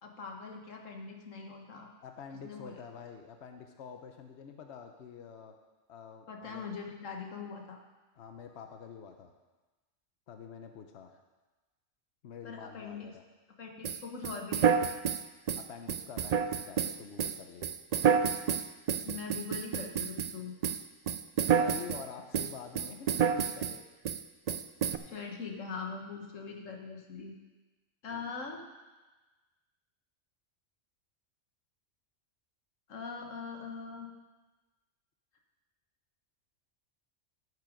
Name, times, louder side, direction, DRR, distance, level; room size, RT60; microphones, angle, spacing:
voice 1, 0.0-1.9 2.4-2.8 6.3-7.8 12.4-13.1 13.6-15.0 19.0-20.5 25.1-27.3 28.0-28.6 32.9-34.1, left 5 dB, 90° left, 2 dB, 1.7 m, -42 dB
voice 2, 2.0-5.5 5.9-6.8 8.2-9.3 10.3-11.1 12.2-13.2 15.5-17.7 21.6-23.8 28.1-28.3, left 7 dB, 65° left, 5 dB, 1.0 m, -47 dB
sound 1, 13.8-20.4 20.6-22.1 22.3-23.8 24.1-24.2 24.5-25.0, right 7 dB, 85° right, 0.3 m, -29 dB
13.5 x 6.7 x 5.1 m, 1.2 s
omnidirectional pair, 1.3 m